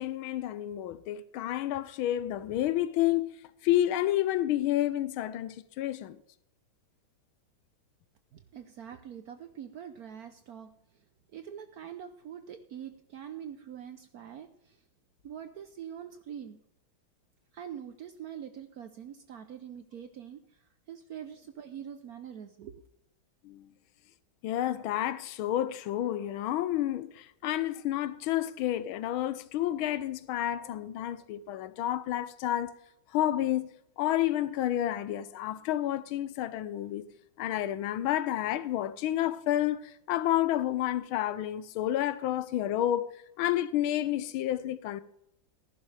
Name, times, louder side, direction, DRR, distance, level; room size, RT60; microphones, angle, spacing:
voice 1, 0.0-3.3 3.6-6.2 23.4-23.6 24.4-32.7 33.1-33.7 34.0-37.1 37.4-39.8 40.1-43.1 43.4-45.0, left 13 dB, 85° left, 1.5 m, -30 dB
voice 2, 8.3-10.7 11.3-14.8 15.2-16.6 17.5-20.4 20.9-22.7, right 9 dB, 65° right, 0.9 m, -44 dB
15.0 x 11.0 x 3.3 m
omnidirectional pair, 2.2 m